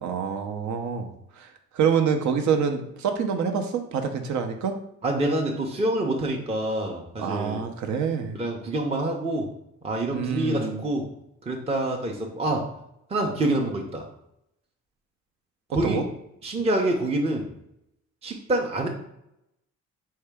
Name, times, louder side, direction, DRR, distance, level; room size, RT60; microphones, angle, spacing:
voice 1, 0.0-1.1 1.4-4.8 7.2-8.4 10.1-10.8 15.8-16.0, right 6 dB, 70° right, 6 dB, 0.7 m, -26 dB
voice 2, 5.0-7.7 8.3-9.5 9.8-11.0 11.5-12.7 13.1-14.1 15.7-16.0 16.4-17.5 18.2-18.9, right 1 dB, 20° right, 1 dB, 0.6 m, -26 dB
4.5 x 2.8 x 3.4 m, 0.80 s
cardioid pair, 90°, 30 cm